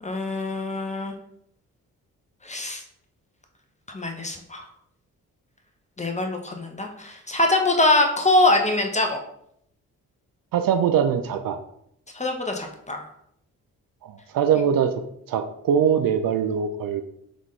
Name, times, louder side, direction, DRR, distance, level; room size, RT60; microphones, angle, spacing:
voice 1, 0.0-1.1 2.4-2.8 3.9-4.6 6.0-9.2 12.1-13.0, left 2 dB, 20° left, 3 dB, 0.9 m, -23 dB
voice 2, 10.5-11.6 14.0-14.9 15.3-17.0, right 8 dB, 60° right, 8 dB, 0.5 m, -22 dB
3.8 x 3.5 x 3.2 m, 0.72 s
hypercardioid pair, 40°, 38 cm